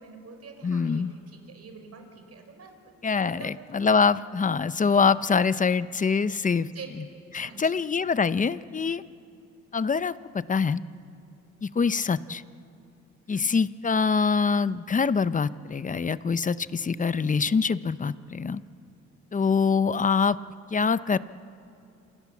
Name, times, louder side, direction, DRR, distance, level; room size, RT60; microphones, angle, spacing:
voice 1, 0.0-3.5 6.7-6.9 7.3-7.7 13.3-13.5, right 5 dB, 55° right, 5 dB, 5.4 m, -46 dB
voice 2, 0.6-1.1 3.0-6.7 7.0-7.1 7.3-9.0 9.7-10.1 10.5-10.8 11.6-12.4 13.3-18.6 19.3-20.4 20.7-21.2, left 5 dB, 25° left, 15 dB, 0.8 m, -24 dB
28.0 x 27.0 x 7.3 m, 2.6 s
cardioid pair, 90°, 30 cm